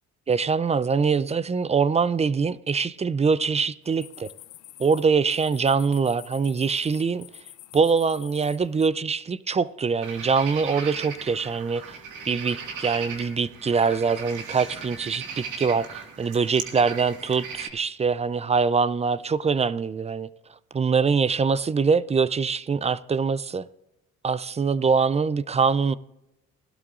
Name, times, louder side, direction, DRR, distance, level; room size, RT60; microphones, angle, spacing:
voice 1, 0.3-4.3 4.8-7.3 7.7-12.0 12.3-20.3 20.7-23.7 24.2-26.0, right 5 dB, 20° right, 0.4 m, -23 dB
sound 1, 3.8-8.9, left 14 dB, 80° left, 0.7 m, -47 dB
sound 2, 10.0-17.7, right 6 dB, 85° right, 1.9 m, -37 dB
17.5 x 12.0 x 2.5 m
cardioid pair, 90°, 30 cm